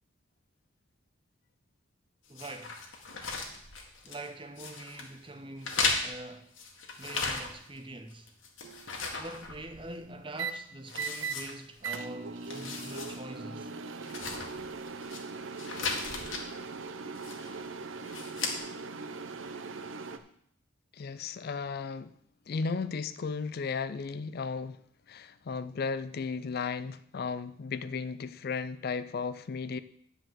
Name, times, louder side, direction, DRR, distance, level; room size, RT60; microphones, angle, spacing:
sound 1, 2.3-4.3 4.6-5.1 5.6-7.8 8.1-10.0 10.4-10.5 10.9-12.0 12.4-13.2 13.5-13.6 14.0-15.2 15.6-16.4 17.1-17.6 18.0-18.6, left 4 dB, 65° left, 1.7 m, -36 dB
voice 1, 2.3-2.8 4.0-6.5 7.0-8.3 9.1-13.7, right 2 dB, 25° right, 0.8 m, -44 dB
sound 2, 8.6-9.0 10.4-10.5 10.9-11.4 11.8-20.2, right 4 dB, 70° right, 0.7 m, -40 dB
voice 2, 20.9-22.1 22.5-24.8 25.1-29.8, left 5 dB, 50° left, 0.4 m, -35 dB
10.0 x 4.9 x 7.6 m
head